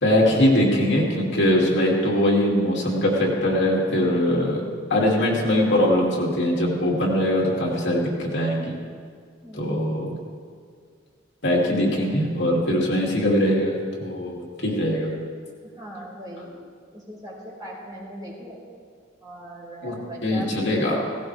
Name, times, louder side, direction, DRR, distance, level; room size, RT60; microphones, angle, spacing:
voice 1, 0.0-4.6 4.9-8.8 9.5-10.1 11.4-15.1 19.8-19.9 20.2-21.1, left 1 dB, 60° left, -2 dB, 2.6 m, -21 dB
voice 2, 9.4-9.9 15.7-16.6 16.9-18.6 19.2-21.1, equal, 20° right, -6 dB, 4.9 m, -39 dB
17.5 x 17.0 x 3.4 m, 2.1 s
head